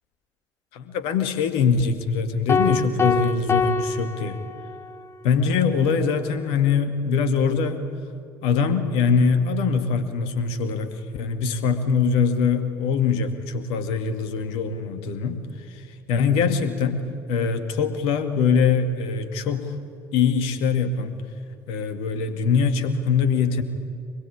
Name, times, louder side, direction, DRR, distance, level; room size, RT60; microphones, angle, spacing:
voice 1, 0.7-4.4 5.2-7.8 8.4-15.4 15.7-17.0 17.3-19.7 20.1-21.2 21.7-23.6, left 5 dB, 70° left, 8 dB, 2.2 m, -23 dB
sound 1, 2.5-5.0, left 4 dB, 25° left, 2.2 m, -24 dB
25.0 x 21.0 x 8.7 m, 2.5 s
figure-of-eight pair, 50°, 10 cm